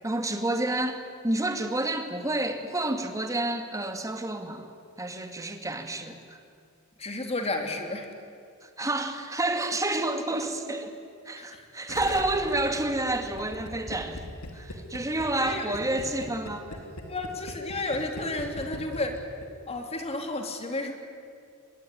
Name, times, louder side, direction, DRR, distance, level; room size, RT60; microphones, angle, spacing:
voice 1, 0.0-4.7 5.0-6.2 8.6-10.9 11.3-14.2 14.5-16.7, right 2 dB, 15° right, 6 dB, 2.2 m, -29 dB
voice 2, 7.0-8.1 11.3-11.6 12.1-12.2 15.2-16.0 17.1-19.2 19.7-20.9, left 2 dB, 30° left, 5 dB, 3.1 m, -32 dB
Gurgling, 11.9-19.7, left 1 dB, 80° left, 3.0 m, -40 dB
25.0 x 21.0 x 9.9 m, 2.4 s
head